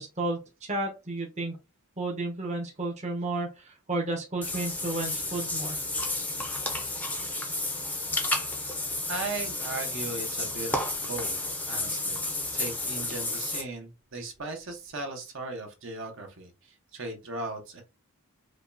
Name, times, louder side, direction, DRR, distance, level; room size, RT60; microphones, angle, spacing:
voice 1, 0.0-1.6 2.0-5.8, right 2 dB, 30° right, -1 dB, 0.9 m, -32 dB
Water / Bathtub (filling or washing), 4.4-13.6, left 2 dB, 5° left, 0.6 m, -32 dB
voice 2, 9.1-11.3 11.7-12.2 12.5-17.8, right 2 dB, 60° right, 4 dB, 0.9 m, -37 dB
5.0 x 2.3 x 2.6 m, 0.27 s
head